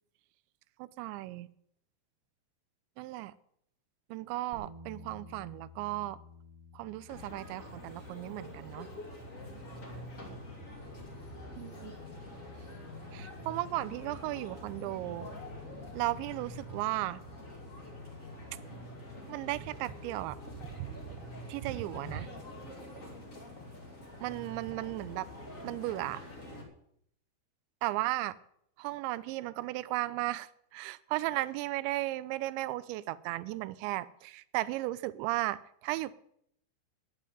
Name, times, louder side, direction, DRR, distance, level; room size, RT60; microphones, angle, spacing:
voice 1, 0.8-1.5 3.0-3.3 4.1-6.2 6.7-8.9 11.5-11.9 13.1-15.3 15.9-17.2 19.3-20.4 20.7-21.2 21.5-22.3 24.2-25.3 25.6-26.2 27.8-28.4 28.8-36.1, right 17 dB, 85° right, 17 dB, 2.9 m, -35 dB
Bass guitar, 4.5-10.8, left 2 dB, 65° right, 3.6 m, -54 dB
sound 1, 7.1-26.6, left 1 dB, 25° left, 1.8 m, -46 dB
9.9 x 9.8 x 9.1 m, 0.70 s
omnidirectional pair, 5.3 m